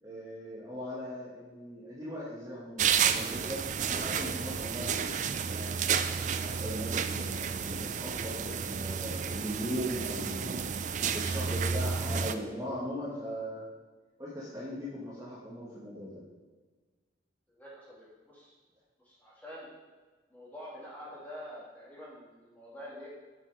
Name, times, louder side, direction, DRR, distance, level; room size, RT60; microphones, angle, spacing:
voice 1, 0.0-5.1 5.5-13.6 14.2-16.2, equal, 20° right, -8 dB, 1.9 m, -39 dB
sound 1, 2.8-12.3, right 7 dB, 40° right, 0.4 m, -31 dB
voice 2, 17.5-18.5 19.0-19.7 20.3-23.1, equal, 10° left, -7 dB, 2.8 m, -46 dB
9.7 x 5.9 x 5.1 m, 1.3 s
head